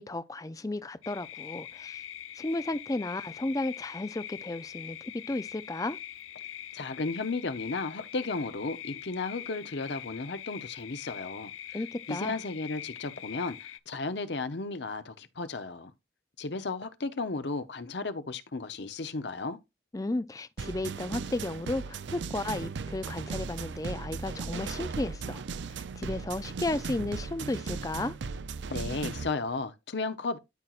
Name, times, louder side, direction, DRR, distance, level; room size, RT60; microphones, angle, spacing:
voice 1, 0.0-2.0 2.4-6.0 11.7-12.4 19.9-25.4 26.0-28.2, left 2 dB, 20° left, 0.4 m, -33 dB
sound 1, 1.0-13.8, left 11 dB, 90° left, 0.4 m, -43 dB
voice 2, 6.7-11.5 12.1-15.9 16.4-19.6 28.7-30.4, left 3 dB, 65° left, 0.8 m, -34 dB
sound 2, 20.6-29.3, right 4 dB, 70° right, 0.5 m, -37 dB
13.0 x 4.5 x 2.4 m
head